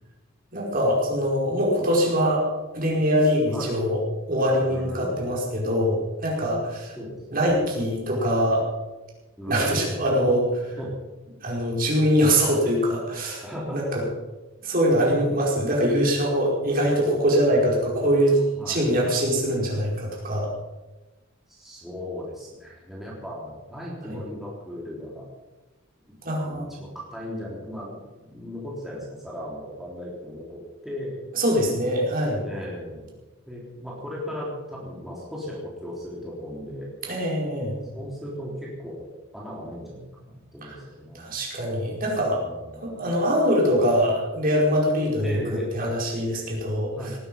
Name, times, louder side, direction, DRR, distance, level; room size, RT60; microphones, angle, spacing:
voice 1, 0.5-2.5 2.7-4.0 4.3-6.9 7.3-8.6 9.5-10.7 11.4-14.0 14.6-18.4 18.7-20.5 24.1-24.2 26.2-26.7 31.3-32.4 37.1-37.8 40.6-40.7 41.1-45.4 45.7-46.9, equal, 40° right, -2 dB, 5.1 m, -23 dB
voice 2, 4.7-5.3 7.0-7.7 9.4-10.1 10.7-11.0 13.4-14.1 18.6-18.9 21.5-25.3 26.1-28.0 28.2-31.2 32.4-33.1 33.5-37.2 37.9-39.1 39.3-41.3 42.4-43.2 45.2-45.7 46.9-47.2, equal, ahead, -5 dB, 3.6 m, -37 dB
19.0 x 13.0 x 5.5 m, 1.1 s
head